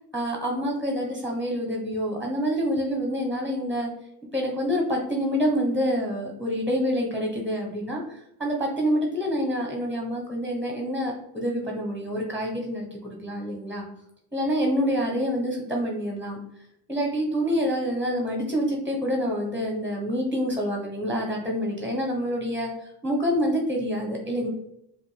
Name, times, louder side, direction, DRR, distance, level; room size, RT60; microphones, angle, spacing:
voice 1, 0.1-3.9 4.3-13.9 14.3-16.4 16.9-24.5, equal, 5° right, -1 dB, 1.0 m, -27 dB
4.9 x 2.1 x 3.3 m, 0.79 s
supercardioid pair, 50°, 43 cm